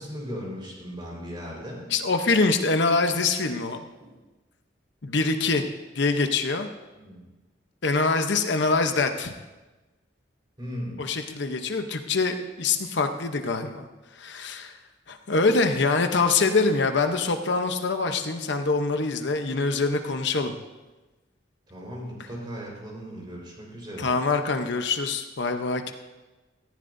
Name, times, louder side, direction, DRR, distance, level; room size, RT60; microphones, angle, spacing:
voice 1, 0.0-1.9 4.0-4.1 7.0-7.3 10.6-11.0 21.7-24.1, equal, 25° right, -2 dB, 4.5 m, -37 dB
voice 2, 1.9-3.8 5.0-5.6 5.9-6.7 7.8-9.3 11.0-13.9 14.1-14.8 15.1-20.5 24.0-25.9, left 3 dB, 65° left, 6 dB, 0.8 m, -24 dB
18.0 x 14.5 x 2.7 m, 1.2 s
head